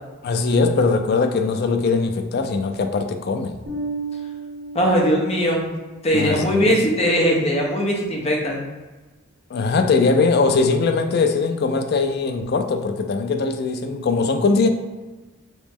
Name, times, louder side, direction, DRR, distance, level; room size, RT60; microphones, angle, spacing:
voice 1, 0.2-3.6 6.1-6.8 9.5-14.7, left 4 dB, 55° left, 6 dB, 0.4 m, -20 dB
Bass guitar, 3.7-6.1, right 3 dB, 70° right, 1.3 m, -33 dB
voice 2, 4.7-5.7 6.0-8.6, equal, 35° left, -1 dB, 0.8 m, -20 dB
3.1 x 2.9 x 3.5 m, 1.2 s
head